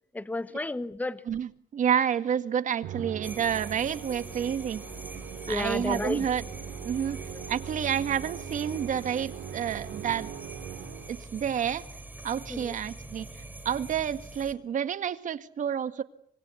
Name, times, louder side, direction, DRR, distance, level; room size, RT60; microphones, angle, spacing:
voice 1, 0.1-1.2 5.4-6.3 12.5-12.8, left 2 dB, 10° left, 1.1 m, -32 dB
voice 2, 1.3-4.8 5.5-6.4 6.8-10.3 11.1-11.9 12.2-16.0, right 8 dB, 50° right, 1.9 m, -29 dB
Musical instrument, 2.8-11.4, right 8 dB, 75° right, 2.4 m, -41 dB
sound 1, 3.2-14.5, right 2 dB, 10° right, 3.6 m, -44 dB
26.0 x 21.5 x 8.5 m
cardioid pair, 110°, 17 cm